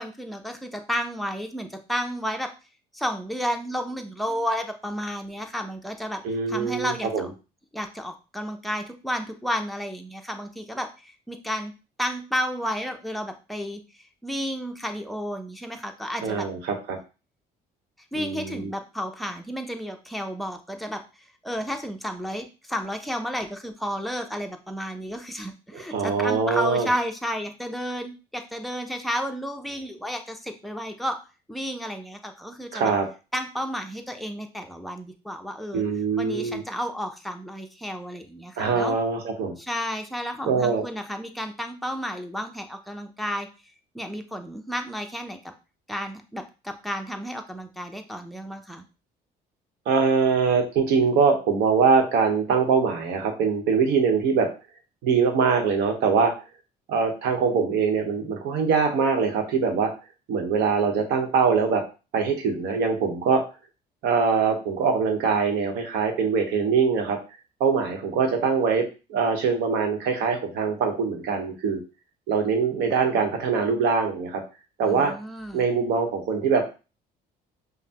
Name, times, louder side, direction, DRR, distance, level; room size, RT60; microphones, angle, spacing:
voice 1, 0.0-2.5 2.9-6.2 6.5-7.3 7.7-11.7 12.0-13.8 14.2-16.5 18.1-21.0 21.4-31.2 31.5-32.9 33.3-35.8 36.2-39.0 39.6-43.5 43.9-45.4 45.9-48.8 74.9-75.7, equal, ahead, 4 dB, 0.6 m, -32 dB
voice 2, 6.2-7.3 16.2-17.0 18.2-18.7 25.9-26.9 32.7-33.1 35.7-36.6 38.6-39.6 40.4-40.8 49.9-54.5 55.0-56.3 56.9-59.9 60.3-61.8 62.1-63.4 64.0-67.2 67.6-68.8 69.1-71.8 72.3-74.4 74.8-75.1 75.5-76.7, right 5 dB, 80° right, 4 dB, 1.0 m, -23 dB
5.4 x 2.2 x 2.9 m, 0.31 s
cardioid pair, 110°, 17 cm